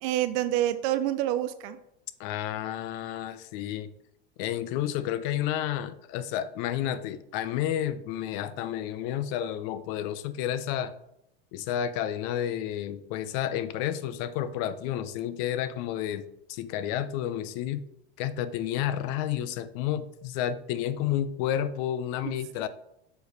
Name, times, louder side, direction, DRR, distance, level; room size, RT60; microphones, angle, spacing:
voice 1, 0.0-1.8, right 13 dB, 55° right, 11 dB, 0.5 m, -27 dB
voice 2, 2.2-3.9 4.4-10.9 11.5-17.9 18.2-22.7, left 11 dB, 55° left, 14 dB, 0.6 m, -31 dB
6.5 x 4.6 x 3.2 m, 0.80 s
hypercardioid pair, 100°, 33 cm